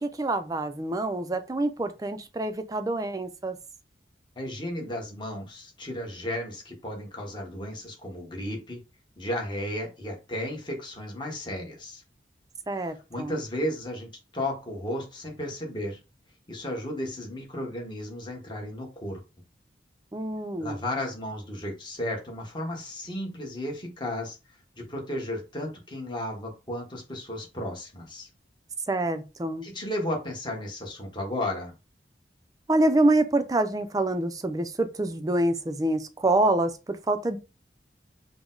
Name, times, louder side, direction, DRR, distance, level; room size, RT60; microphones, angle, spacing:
voice 1, 0.0-3.6 12.7-13.4 20.1-20.8 28.9-29.7 32.7-37.4, right 2 dB, 20° right, 0.4 m, -26 dB
voice 2, 4.3-8.8 9.2-12.0 12.7-16.0 16.5-19.2 20.6-24.4 24.8-28.3 29.6-31.7, left 1 dB, 25° left, 1.2 m, -34 dB
4.9 x 2.1 x 3.8 m
head